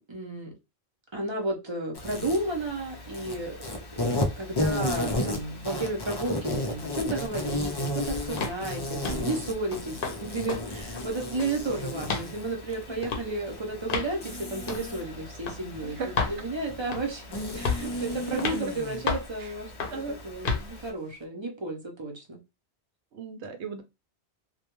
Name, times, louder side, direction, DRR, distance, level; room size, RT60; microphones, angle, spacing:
voice 1, 0.1-0.5 1.1-3.6 4.0-19.7 20.2-22.4, right 2 dB, 35° right, 1 dB, 0.6 m, -33 dB
Insect, 1.9-20.9, left 1 dB, 40° left, 0.3 m, -34 dB
sound 1, 8.4-8.6 9.0-9.3 9.7-10.2 10.5-10.6 11.0-11.6 12.0-12.3 13.0-13.3 13.9-14.1 14.7-14.9 15.5-15.6 16.2-16.4 16.9-17.2 17.7-17.9 18.4-18.6 19.1-19.3 19.8-20.0 20.5-20.7, left 4 dB, 60° left, 0.7 m, -30 dB
voice 2, 15.8-16.3 18.3-18.6 19.4-19.5 19.9-20.2 23.1-23.8, right 4 dB, 90° right, 6 dB, 0.9 m, -36 dB
2.3 x 2.1 x 2.9 m, 0.25 s
omnidirectional pair, 1.1 m